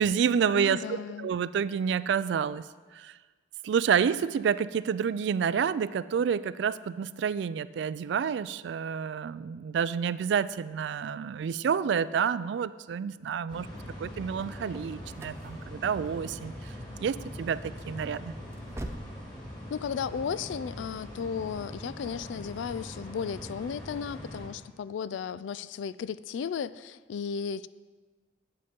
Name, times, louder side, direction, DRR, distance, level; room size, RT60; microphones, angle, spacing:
voice 1, 0.0-2.6 2.9-3.1 3.6-13.7 14.0-16.7 17.0-18.3, right 7 dB, 70° right, 17 dB, 0.3 m, -29 dB
voice 2, 0.5-1.3 19.7-27.7, left 7 dB, 85° left, 16 dB, 0.3 m, -35 dB
sound 1, 13.5-24.5, equal, 25° left, 2.4 m, -42 dB
sound 2, 14.5-19.2, right 1 dB, 15° right, 0.5 m, -45 dB
8.2 x 7.7 x 5.2 m, 1.4 s
head